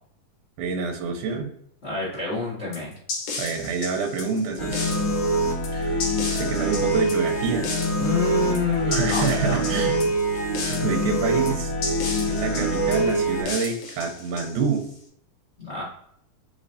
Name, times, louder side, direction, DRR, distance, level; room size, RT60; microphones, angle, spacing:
voice 1, 0.6-1.5 3.4-4.9 5.7-6.0 6.3-7.7 8.9-10.0 10.3-11.7 12.3-14.8, right 5 dB, 80° right, 2 dB, 2.2 m, -27 dB
voice 2, 1.8-3.0 8.0-9.6 15.6-15.8, left 4 dB, 85° left, -6 dB, 0.5 m, -27 dB
sound 1, 2.7-14.9, left 4 dB, 65° left, 1.9 m, -34 dB
sound 2, 4.6-13.4, right 1 dB, 40° left, 1.9 m, -24 dB
4.9 x 3.2 x 2.7 m, 0.70 s
omnidirectional pair, 3.6 m